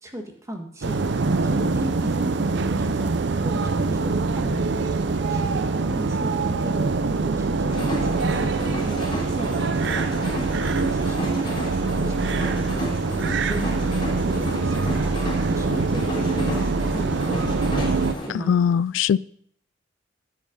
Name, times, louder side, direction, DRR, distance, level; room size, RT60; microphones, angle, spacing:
voice 1, 0.0-11.5 11.8-16.0 16.3-17.9 18.2-18.5, equal, 15° right, 3 dB, 1.6 m, -36 dB
sound 1, 0.8-18.1, right 3 dB, 65° right, 0.6 m, -24 dB
sound 2, 7.7-18.3, equal, 25° left, 3.6 m, -33 dB
voice 2, 18.3-19.2, left 7 dB, 80° left, 20 dB, 0.3 m, -20 dB
9.8 x 8.7 x 5.3 m, 0.64 s
head